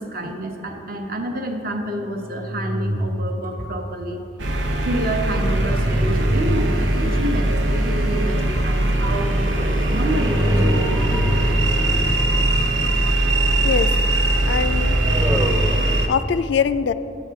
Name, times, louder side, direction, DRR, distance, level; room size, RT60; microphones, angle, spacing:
voice 1, 0.0-4.2 4.8-10.5, right 1 dB, 50° right, 3 dB, 0.9 m, -28 dB
sound 1, 0.7-1.0 2.2-3.7 5.1-7.4 8.1-13.2 14.4-16.2, equal, 10° right, 0.6 m, -27 dB
sound 2, 4.4-16.1, right 1 dB, 80° right, 0.9 m, -20 dB
voice 2, 13.3-13.9 14.5-15.0 16.1-16.9, left 6 dB, 65° left, 13 dB, 0.3 m, -23 dB
10.0 x 8.8 x 4.7 m, 2.8 s
head